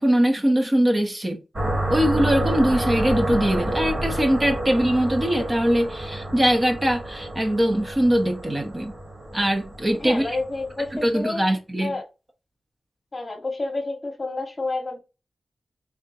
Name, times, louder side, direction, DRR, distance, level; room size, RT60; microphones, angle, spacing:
voice 1, 0.0-1.4 1.9-8.9 9.3-10.4 11.0-11.9, equal, 25° right, 0.8 m, -22 dB
sound 1, 1.5-11.1, right 1 dB, 50° right, 1.9 m, -29 dB
voice 2, 10.0-11.5 11.8-12.0 13.1-15.0, left 2 dB, 35° left, 1.0 m, -29 dB
3.5 x 3.5 x 2.8 m
wide cardioid pair, 115°, 0 cm